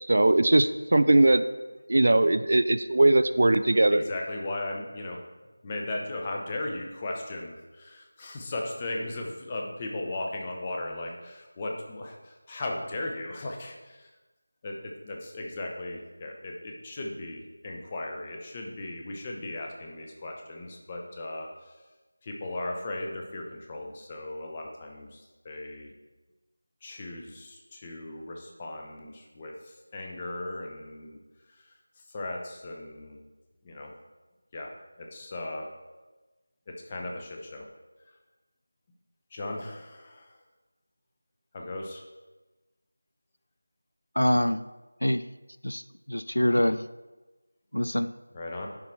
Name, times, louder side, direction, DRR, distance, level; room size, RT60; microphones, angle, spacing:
voice 1, 0.1-1.4 1.9-4.0, right 2 dB, 50° right, 12 dB, 0.4 m, -20 dB
voice 2, 3.9-5.2 5.6-14.1 14.6-21.8 22.2-25.9 26.8-31.2 31.6-33.2 33.6-33.9 34.5-34.7 35.0-35.7 36.7-37.7 39.3-40.4 41.5-42.0 48.3-48.7, left 2 dB, 20° left, 0 dB, 0.9 m, -37 dB
voice 3, 44.2-44.7 45.0-45.3 45.6-45.8 46.1-46.9 47.7-48.1, left 1 dB, 80° left, 14 dB, 0.3 m, -25 dB
11.0 x 4.1 x 4.5 m, 1.2 s
figure-of-eight pair, 170°, 0 cm